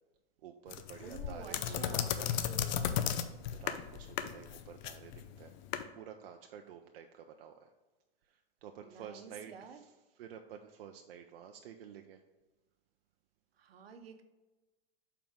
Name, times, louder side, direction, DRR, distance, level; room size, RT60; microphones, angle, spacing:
voice 1, 0.4-2.3 3.5-5.5 5.9-7.7 8.2-12.2, right 8 dB, 70° right, 5 dB, 0.6 m, -51 dB
sound 1, 0.7-5.8, left 10 dB, 50° left, 0.6 m, -35 dB
voice 2, 1.0-3.3 8.8-9.8 13.6-14.2, right 6 dB, 85° right, 7 dB, 0.9 m, -51 dB
7.1 x 4.6 x 3.7 m, 1.2 s
hypercardioid pair, 130°, 29 cm